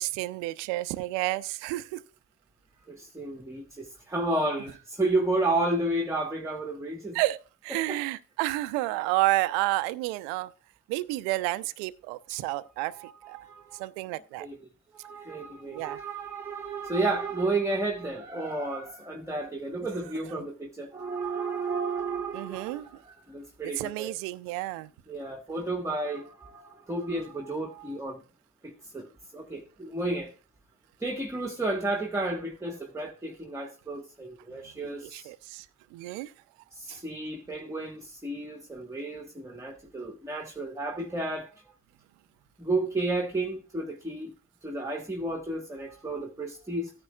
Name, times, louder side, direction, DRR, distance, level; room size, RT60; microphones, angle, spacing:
voice 1, 0.0-2.0 7.1-10.5 10.9-13.4 13.7-14.5 15.7-16.0 22.3-22.9 23.8-24.9 34.8-35.7 35.9-36.3 36.9-37.0, right 18 dB, 70° right, 0.7 m, -30 dB
voice 2, 2.9-7.2 7.7-8.0 12.3-12.4 12.9-13.8 14.4-14.6 14.9-24.1 25.1-28.2 28.6-29.1 29.3-30.3 31.0-35.3 36.7-41.5 42.6-44.3 44.6-46.9, right 2 dB, 5° right, 1.4 m, -32 dB
15.0 x 9.6 x 2.3 m
hypercardioid pair, 65°, 45 cm